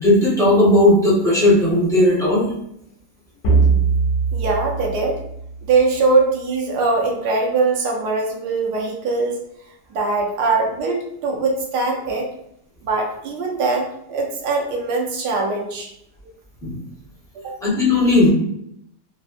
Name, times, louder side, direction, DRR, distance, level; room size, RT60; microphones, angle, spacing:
voice 1, 0.0-2.5 16.6-16.7 17.6-18.3, left 1 dB, 5° left, -9 dB, 0.6 m, -15 dB
sound 1, 3.4-6.1, right 5 dB, 60° left, 0.9 m, -21 dB
voice 2, 4.3-5.2 5.7-9.4 9.9-12.3 12.8-15.9 17.4-17.6, right 3 dB, 75° right, 0 dB, 1.2 m, -21 dB
3.3 x 2.1 x 2.4 m, 0.73 s
omnidirectional pair, 1.8 m